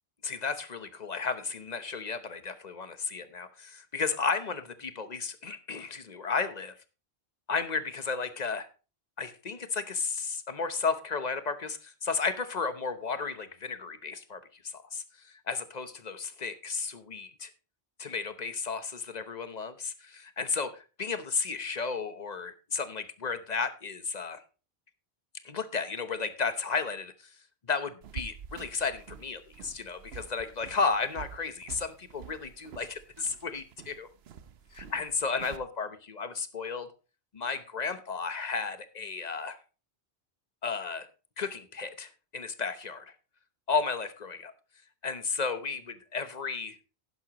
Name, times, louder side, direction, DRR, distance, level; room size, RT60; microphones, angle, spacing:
voice 1, 0.2-6.7 7.5-8.7 9.2-17.5 18.0-24.4 25.4-27.4 27.7-34.1 34.7-36.9 37.3-39.6 40.6-41.1 41.4-43.1 43.7-44.5 45.0-46.8, left 5 dB, 45° left, 11 dB, 1.0 m, -33 dB
sound 1, 28.0-35.6, right 7 dB, 80° right, 1.0 m, -47 dB
11.0 x 11.0 x 3.0 m, 0.33 s
omnidirectional pair, 1.0 m